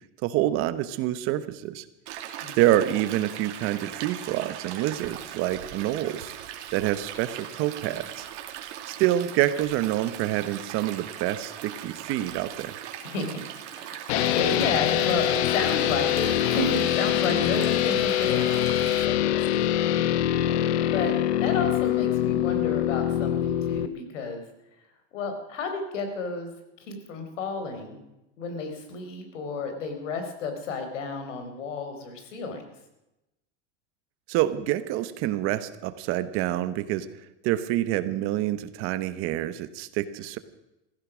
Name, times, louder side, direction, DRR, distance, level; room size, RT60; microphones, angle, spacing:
voice 1, 0.2-1.8 2.6-6.3 6.7-8.3 8.9-12.8 34.3-37.1 37.4-40.4, right 13 dB, 35° right, 13 dB, 1.0 m, -27 dB
Stream, 2.1-19.1, right 11 dB, 70° right, 2.6 m, -40 dB
voice 2, 13.0-20.1 20.4-21.1 21.4-24.4 25.1-26.5 26.8-28.0 28.4-32.6, left 3 dB, 90° left, 7 dB, 4.4 m, -32 dB
sound 1, 14.1-23.9, left 12 dB, 65° left, 1.0 m, -24 dB
15.5 x 15.0 x 6.2 m, 0.92 s
supercardioid pair, 155°, 36 cm